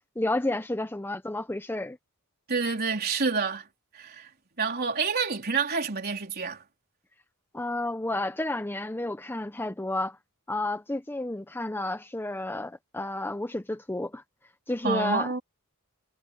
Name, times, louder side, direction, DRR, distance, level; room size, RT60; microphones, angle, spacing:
voice 1, 0.2-2.0 7.5-10.2 10.5-14.2 14.7-15.3, left 2 dB, 10° left, 0.8 m, -31 dB
voice 2, 2.5-3.7 3.9-4.3 4.6-6.6 14.8-15.4, right 5 dB, 45° right, 3.7 m, -28 dB
head